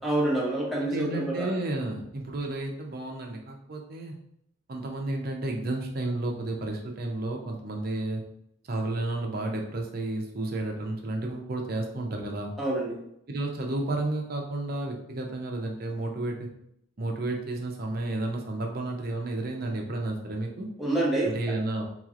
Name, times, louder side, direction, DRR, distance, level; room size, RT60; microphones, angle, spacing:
voice 1, 0.0-1.5 12.6-13.0 20.8-21.5, right 1 dB, ahead, -5 dB, 0.9 m, -27 dB
voice 2, 0.8-4.2 4.7-8.2 8.7-12.5 13.3-16.5 17.0-20.7 21.2-21.9, right 2 dB, 50° right, 1 dB, 0.6 m, -32 dB
3.9 x 3.0 x 2.4 m, 0.73 s
head